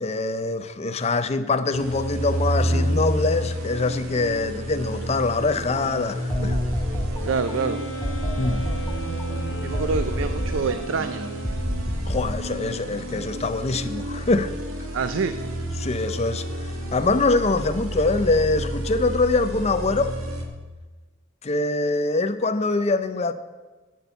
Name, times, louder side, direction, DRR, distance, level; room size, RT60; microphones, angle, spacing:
voice 1, 0.0-6.6 8.4-8.7 12.1-14.5 15.8-16.4 16.9-20.1 21.4-23.3, left 3 dB, 30° left, 0.5 m, -24 dB
sound 1, 1.7-20.4, equal, 85° right, 1.8 m, -30 dB
sound 2, 5.7-7.5 8.0-10.8 11.4-12.3, equal, 15° left, 1.3 m, -29 dB
voice 2, 7.2-7.8 9.6-11.3 14.9-15.3, right 5 dB, 70° right, 0.5 m, -26 dB
Wind instrument woodwind instrument, 7.4-12.1, right 4 dB, 70° left, 0.9 m, -37 dB
10.5 x 6.0 x 8.1 m
head